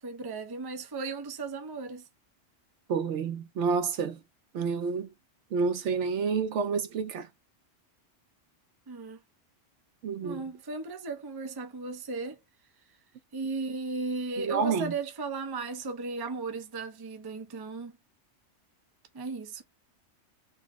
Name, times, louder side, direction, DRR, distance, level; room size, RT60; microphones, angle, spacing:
voice 1, 0.0-2.1 8.9-9.2 10.2-12.4 13.3-17.9 19.1-19.6, right 3 dB, 30° right, 0.5 m, -36 dB
voice 2, 2.9-4.2 4.5-5.1 5.5-7.3 10.0-10.4 14.4-14.9, right 5 dB, 75° right, 1.0 m, -29 dB
4.0 x 2.0 x 3.6 m
omnidirectional pair, 1.2 m